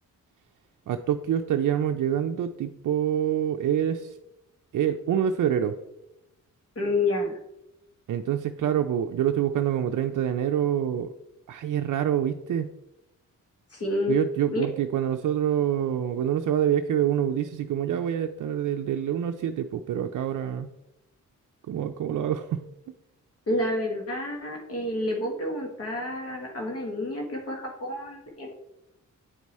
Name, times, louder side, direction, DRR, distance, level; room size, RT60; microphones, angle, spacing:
voice 1, 0.9-4.2 4.7-5.8 8.1-11.1 11.5-12.7 14.1-20.7 21.7-22.6, right 10 dB, 70° right, 6 dB, 0.5 m, -26 dB
voice 2, 6.7-7.4 13.7-14.1 14.5-14.7 23.5-28.5, left 1 dB, 45° left, 0 dB, 1.3 m, -29 dB
9.2 x 4.7 x 4.1 m, 0.88 s
wide cardioid pair, 150°, 32 cm